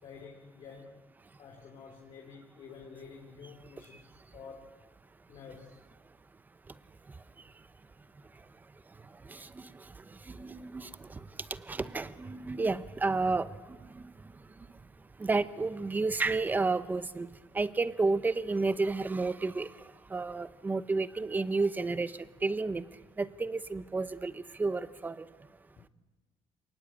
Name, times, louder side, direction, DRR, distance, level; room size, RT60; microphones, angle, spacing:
voice 1, 0.0-1.0 1.4-4.7 5.3-5.8, left 5 dB, 45° left, 1 dB, 3.0 m, -49 dB
voice 2, 9.3-9.7 10.3-11.2 11.5-13.5 13.9-14.0 15.2-17.3 17.5-19.7 20.1-22.1 22.4-22.8 23.2-25.2, right 3 dB, 15° right, 14 dB, 0.8 m, -31 dB
27.5 x 19.0 x 8.7 m, 1.3 s
cardioid pair, 155°, 12 cm